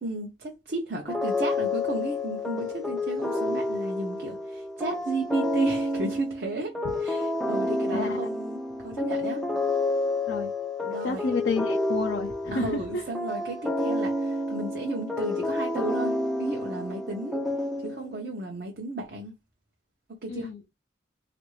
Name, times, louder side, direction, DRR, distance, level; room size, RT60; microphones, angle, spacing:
voice 1, 0.0-9.4 10.8-11.3 12.5-17.4 17.8-19.3 20.2-20.5, right 2 dB, 50° right, 0.6 m, -34 dB
sound 1, 1.1-18.3, left 2 dB, ahead, 0.4 m, -29 dB
voice 2, 11.0-13.0 20.3-20.6, left 4 dB, 70° left, 0.5 m, -30 dB
3.1 x 2.5 x 3.0 m
head